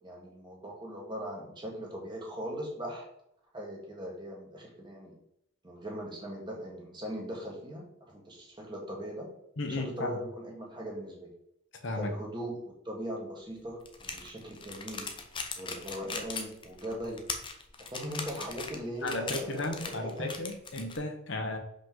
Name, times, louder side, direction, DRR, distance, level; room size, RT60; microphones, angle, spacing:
voice 1, 0.0-3.1 3.5-5.2 5.6-9.3 9.7-11.3 11.9-15.1 15.6-17.3 17.8-20.3, equal, 20° right, -1 dB, 1.5 m, -40 dB
voice 2, 9.6-10.2 11.8-12.1 19.0-21.6, left 2 dB, 60° left, 4 dB, 1.0 m, -34 dB
sound 1, 13.9-21.0, left 4 dB, 25° left, 0.7 m, -39 dB
5.9 x 5.4 x 3.8 m, 0.74 s
head